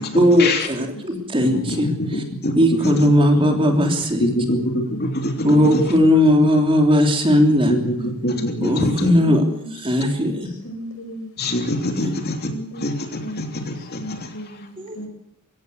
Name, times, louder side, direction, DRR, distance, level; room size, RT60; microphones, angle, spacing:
voice 1, 0.1-2.2 2.5-4.3 5.4-7.7 8.6-9.4 9.7-10.5 12.0-12.1 14.8-15.0, equal, 25° right, 3 dB, 3.3 m, -17 dB
voice 2, 1.5-2.5 2.8-2.9 4.2-5.5 5.7-5.8 7.7-9.1 11.4-12.5 12.8-14.3, left 1 dB, 45° left, 4 dB, 3.2 m, -24 dB
voice 3, 4.3-5.0 5.3-5.8 7.9-8.9 9.2-9.7 10.2-10.4 10.6-11.3 12.5-12.8 13.2-15.1, right 1 dB, 75° left, 6 dB, 5.3 m, -35 dB
22.5 x 16.5 x 8.1 m, 0.76 s
head